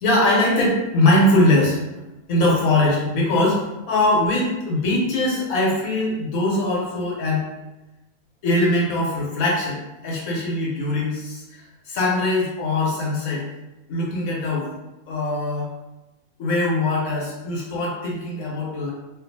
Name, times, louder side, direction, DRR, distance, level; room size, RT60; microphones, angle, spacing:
voice 1, 0.0-1.8 2.3-7.4 8.4-9.8 10.0-11.6 11.9-13.4 13.9-14.7 15.1-15.7 16.4-18.9, left 1 dB, 75° left, -4 dB, 1.2 m, -21 dB
2.5 x 2.4 x 2.6 m, 1.0 s
omnidirectional pair, 1.5 m